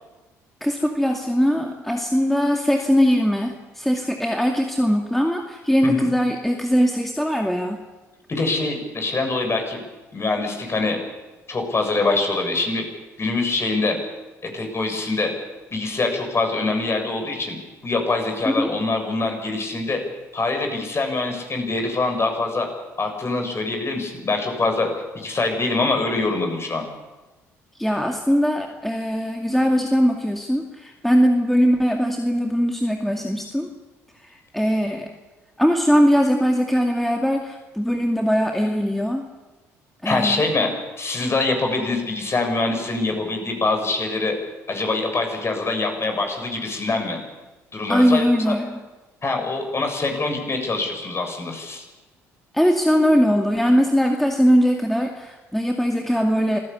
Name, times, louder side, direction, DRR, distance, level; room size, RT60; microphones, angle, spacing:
voice 1, 0.6-7.8 18.5-18.7 27.8-33.7 34.5-35.1 35.6-39.2 40.0-40.4 47.9-48.8 52.5-56.6, equal, 5° left, 2 dB, 2.3 m, -20 dB
voice 2, 8.3-9.8 10.1-11.0 11.5-12.8 13.2-14.0 14.4-15.3 15.7-17.6 17.8-20.0 20.3-22.7 23.0-24.9 25.1-26.9 40.0-44.4 44.7-47.2 47.7-48.5 49.2-51.8, left 3 dB, 35° left, 4 dB, 7.0 m, -24 dB
26.5 x 16.0 x 8.5 m, 1.2 s
hypercardioid pair, 50°, 8 cm